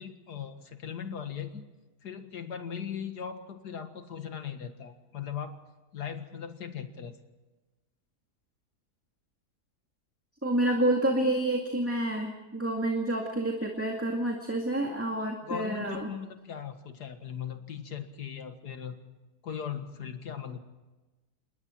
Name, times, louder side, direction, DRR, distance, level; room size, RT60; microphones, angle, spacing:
voice 1, 0.0-1.6 2.0-5.6 5.9-7.2 15.4-19.0 19.4-20.6, left 8 dB, 85° left, 8 dB, 2.2 m, -38 dB
voice 2, 10.4-16.1, right 1 dB, 10° right, 1 dB, 2.1 m, -28 dB
27.5 x 21.0 x 4.5 m, 1.2 s
omnidirectional pair, 1.7 m